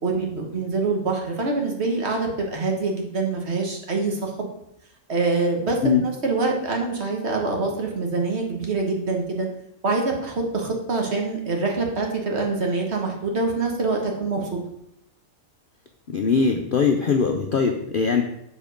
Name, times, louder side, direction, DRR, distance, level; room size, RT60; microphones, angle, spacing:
voice 1, 0.0-4.5 5.1-5.8 6.0-9.5 9.8-14.6, right 3 dB, 50° right, 1 dB, 1.6 m, -25 dB
voice 2, 16.1-18.2, left 5 dB, 55° left, 4 dB, 0.6 m, -21 dB
7.2 x 4.5 x 5.1 m, 0.77 s
omnidirectional pair, 1.5 m